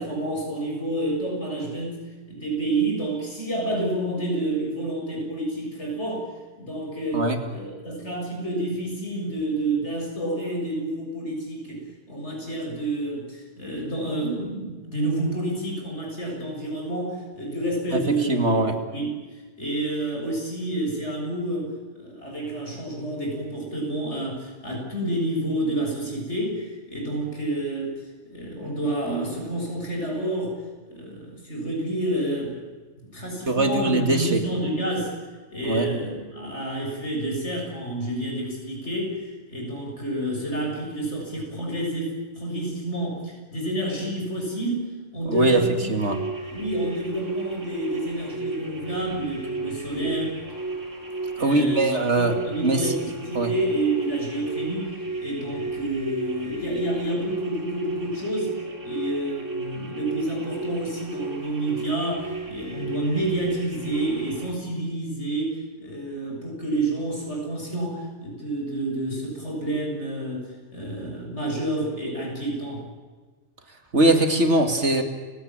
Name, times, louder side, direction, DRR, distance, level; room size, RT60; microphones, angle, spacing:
voice 1, 0.0-6.2 6.6-19.1 19.6-30.6 30.9-32.6 33.1-35.1 35.5-45.9 46.5-50.3 51.4-58.6 58.8-72.9, right 1 dB, 70° left, 0 dB, 7.6 m, -29 dB
voice 2, 17.9-18.7 33.5-34.4 35.6-35.9 45.3-45.6 45.9-46.2 51.4-52.4 52.6-52.9 53.3-53.5 73.9-75.0, right 2 dB, 65° right, 6 dB, 2.9 m, -21 dB
sound 1, 46.0-64.5, right 3 dB, 90° right, 4.0 m, -33 dB
30.0 x 17.5 x 9.0 m, 1.3 s
omnidirectional pair, 1.2 m